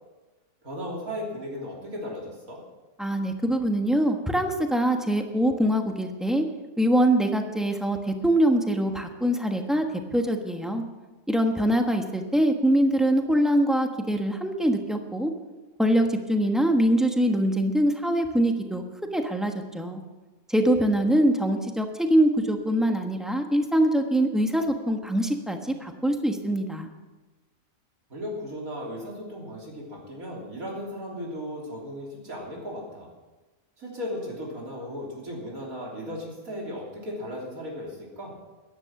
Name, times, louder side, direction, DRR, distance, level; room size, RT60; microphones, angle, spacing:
voice 1, 0.6-2.6 28.1-33.1 33.8-38.4, equal, 80° right, -2 dB, 3.8 m, -36 dB
voice 2, 3.0-6.4 6.8-9.9 10.1-10.8 11.3-15.3 15.8-18.8 19.1-20.0 20.5-26.9, right 1 dB, ahead, 4 dB, 1.1 m, -23 dB
14.0 x 10.5 x 6.0 m, 1.2 s
omnidirectional pair, 1.5 m